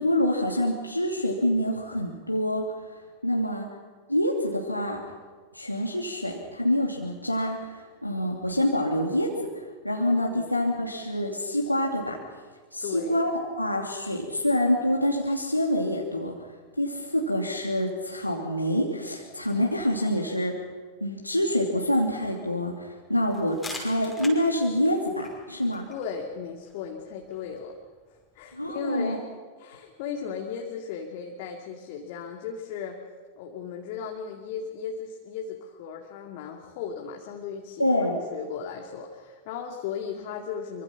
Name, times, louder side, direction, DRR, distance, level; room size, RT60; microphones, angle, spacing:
voice 1, 0.0-2.6 3.2-3.7 4.1-5.0 5.5-9.3 9.8-12.2 12.7-13.3 13.6-16.3 16.8-20.5 21.0-25.8 28.5-29.2 37.8-38.2, left 1 dB, 90° left, -1 dB, 2.7 m, -26 dB
voice 2, 12.8-13.2 25.9-27.7 28.3-29.2 29.6-33.0 33.4-37.9 38.3-40.8, left 7 dB, 50° left, 1 dB, 2.5 m, -36 dB
sound 1, 23.3-28.8, left 2 dB, 5° left, 5.5 m, -46 dB
25.5 x 24.5 x 6.0 m, 1.4 s
figure-of-eight pair, 90°, 0 cm